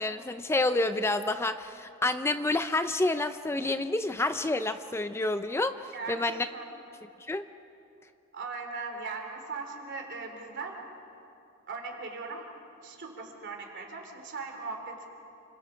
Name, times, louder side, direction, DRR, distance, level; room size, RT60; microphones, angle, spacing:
voice 1, 0.0-6.5 7.2-7.5, left 2 dB, 10° left, 10 dB, 0.4 m, -29 dB
voice 2, 5.9-6.6 8.3-10.8 11.7-12.5 12.8-15.1, right 4 dB, 55° right, 3 dB, 3.5 m, -39 dB
29.0 x 25.5 x 5.0 m, 2.7 s
head